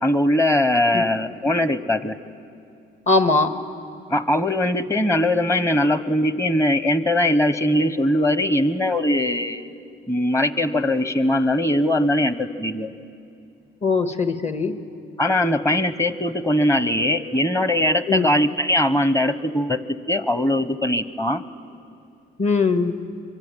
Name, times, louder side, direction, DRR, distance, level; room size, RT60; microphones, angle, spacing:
voice 1, 0.0-2.2 4.1-9.7 10.1-12.9 15.2-19.8 20.1-21.4, left 1 dB, 15° left, 12 dB, 1.2 m, -21 dB
voice 2, 3.1-3.5 13.8-14.7 18.1-18.3 22.4-22.9, left 4 dB, 35° left, 8 dB, 1.9 m, -20 dB
24.5 x 24.0 x 9.2 m, 2.5 s
cardioid pair, 90°, 20 cm